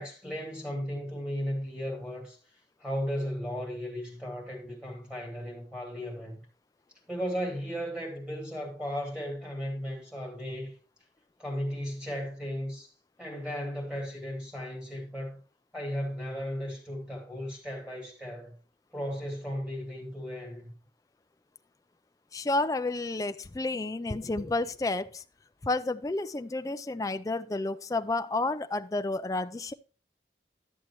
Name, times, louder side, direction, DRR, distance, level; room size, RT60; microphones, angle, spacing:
voice 1, 0.0-2.4 2.8-6.4 7.1-10.8 11.4-12.9 13.2-15.4 15.7-18.5 18.9-20.7, equal, 5° right, 2.9 m, -35 dB
voice 2, 22.3-25.2 25.6-29.7, left 2 dB, 20° left, 0.3 m, -31 dB
12.0 x 7.4 x 2.9 m
head